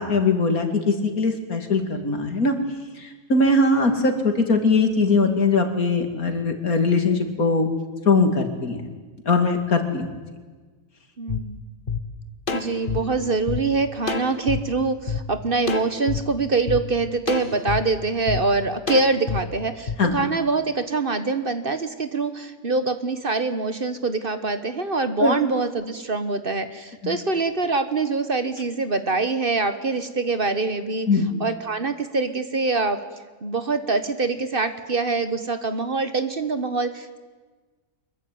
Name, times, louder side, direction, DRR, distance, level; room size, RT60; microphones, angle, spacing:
voice 1, 0.0-2.6 3.0-7.7 8.0-8.8 9.2-10.1 20.0-20.1 25.2-25.4 27.0-27.2 31.1-31.4, left 3 dB, 80° left, 5 dB, 3.2 m, -21 dB
voice 2, 11.2-11.6 12.5-31.1 31.4-33.0 33.4-37.2, right 3 dB, 40° right, 10 dB, 1.4 m, -24 dB
sound 1, 11.3-11.4 11.9-12.0 12.5-13.6 14.1-14.6 15.1-15.2 15.7-16.2 16.7-16.8 17.3-17.8 18.3-18.4 18.9-19.4 19.9-20.0, left 5 dB, 40° left, 1.6 m, -27 dB
24.5 x 22.5 x 9.4 m, 1.4 s
omnidirectional pair, 1.5 m